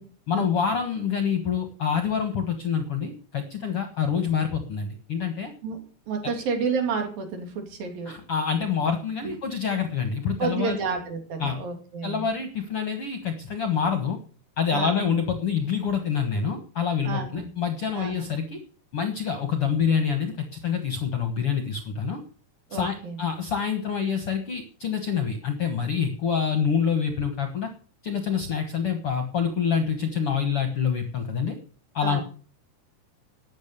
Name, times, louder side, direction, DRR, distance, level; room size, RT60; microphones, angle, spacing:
voice 1, 0.3-5.5 8.1-10.8 11.4-11.6 12.0-14.2 14.6-18.6 18.9-22.2 22.7-27.7 28.0-31.5 31.9-32.2, left 7 dB, 55° left, 6 dB, 1.7 m, -26 dB
voice 2, 5.6-8.2 9.2-9.3 10.4-12.3 14.7-15.0 17.0-17.5 17.9-18.3 22.7-23.2 32.0-32.2, right 5 dB, 65° right, 4 dB, 4.5 m, -30 dB
13.0 x 9.3 x 6.8 m, 0.42 s
omnidirectional pair, 4.4 m